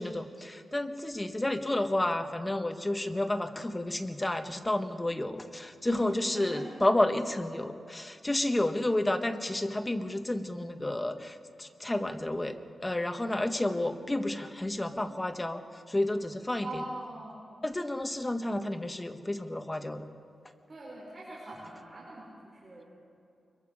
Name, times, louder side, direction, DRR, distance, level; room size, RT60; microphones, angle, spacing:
voice 1, 0.0-12.6 12.8-16.8 17.6-20.1, left 1 dB, 15° left, 7 dB, 1.3 m, -31 dB
voice 2, 6.3-6.8 16.6-17.6 20.7-22.9, right 2 dB, 35° right, -6 dB, 5.4 m, -42 dB
25.0 x 22.5 x 5.0 m, 2.6 s
wide cardioid pair, 110°, 0 cm